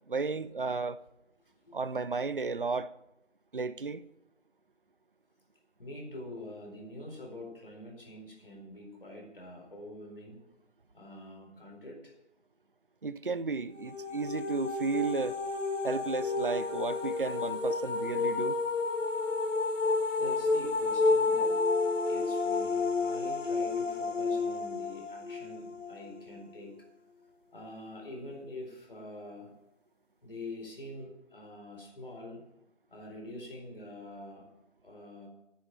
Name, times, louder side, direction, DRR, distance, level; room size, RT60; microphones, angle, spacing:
voice 1, 0.1-1.0 1.7-2.9 3.5-4.0 13.0-15.4 15.8-18.6, right 4 dB, 50° right, 0.6 m, -33 dB
voice 2, 5.8-10.4 10.9-12.1 20.2-21.6 22.0-26.8 27.5-29.5 30.2-32.4 32.9-34.5 34.8-35.3, left 1 dB, 50° left, 4.2 m, -45 dB
sound 1, 13.8-26.6, left 3 dB, 85° left, 1.8 m, -30 dB
10.0 x 8.1 x 8.9 m
figure-of-eight pair, 175°, 36 cm